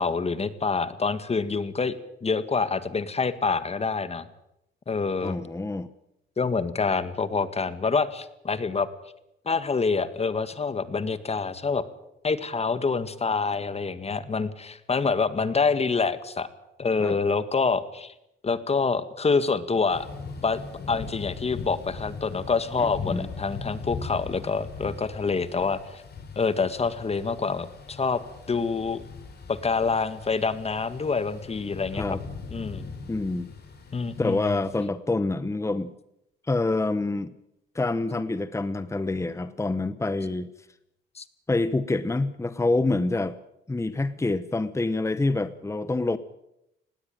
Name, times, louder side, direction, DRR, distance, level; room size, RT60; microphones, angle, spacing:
voice 1, 0.0-1.9 2.2-4.3 4.9-5.4 6.4-8.9 9.5-11.8 12.2-16.5 16.8-18.1 18.4-20.1 20.4-20.6 20.9-26.0 26.4-28.2 28.5-29.0 29.5-32.2 32.5-32.9 33.9-34.6 41.2-41.3, left 4 dB, 30° left, 13 dB, 1.8 m, -26 dB
voice 2, 5.2-5.9 17.0-17.2 23.1-23.3 32.0-32.2 33.1-33.5 34.2-35.9 36.5-37.3 37.7-40.5 41.5-43.4 43.7-46.2, left 2 dB, 15° left, 14 dB, 1.0 m, -26 dB
Thunder / Rain, 19.9-34.8, left 4 dB, 55° left, 5.0 m, -40 dB
19.5 x 17.0 x 9.2 m, 0.85 s
cardioid pair, 90°, 20 cm